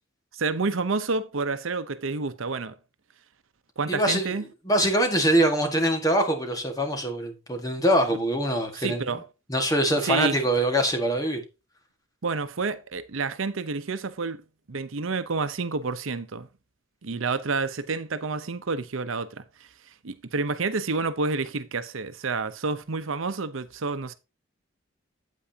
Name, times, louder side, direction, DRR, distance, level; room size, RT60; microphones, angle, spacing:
voice 1, 0.3-2.7 3.8-4.4 8.7-9.3 10.0-10.4 12.2-14.4 14.7-16.5 17.0-19.7 20.0-24.1, right 4 dB, 85° right, 0.8 m, -29 dB
voice 2, 3.9-4.3 4.7-9.0 9.5-11.4, right 1 dB, 20° left, 1.7 m, -23 dB
8.6 x 8.6 x 2.8 m
head